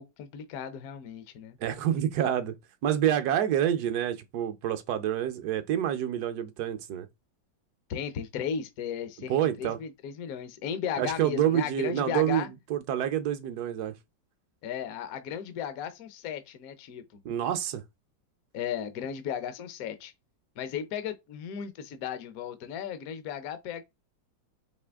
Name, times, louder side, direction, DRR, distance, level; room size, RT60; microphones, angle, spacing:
voice 1, 0.0-1.6 7.9-12.5 14.6-17.0 18.5-20.1 20.6-23.8, left 8 dB, 65° left, 1.0 m, -35 dB
voice 2, 1.6-2.6 2.8-7.1 9.3-9.8 11.0-13.9 17.2-17.8, right 10 dB, 70° right, 1.1 m, -28 dB
5.0 x 2.8 x 3.4 m
omnidirectional pair, 2.0 m